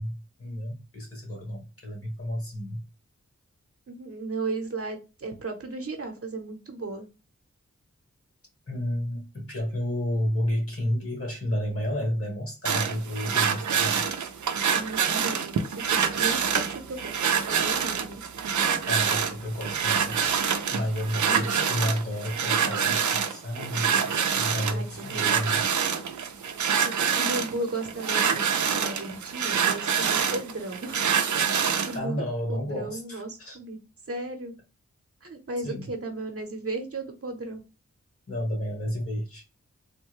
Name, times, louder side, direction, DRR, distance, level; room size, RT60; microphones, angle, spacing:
voice 1, 0.0-2.8 8.7-14.0 18.9-20.3 20.7-25.6 31.9-33.6 35.6-35.9 38.3-39.4, equal, 50° left, 1.5 m, -31 dB
voice 2, 3.9-7.1 14.7-18.2 21.3-21.6 24.7-25.4 26.4-26.5 26.8-31.1 31.8-33.8 34.1-34.5 35.2-37.6, right 2 dB, 50° right, 0.8 m, -35 dB
sound 1, 12.6-32.0, right 7 dB, 80° right, 0.5 m, -26 dB
3.5 x 2.2 x 3.0 m
wide cardioid pair, 75°, 29 cm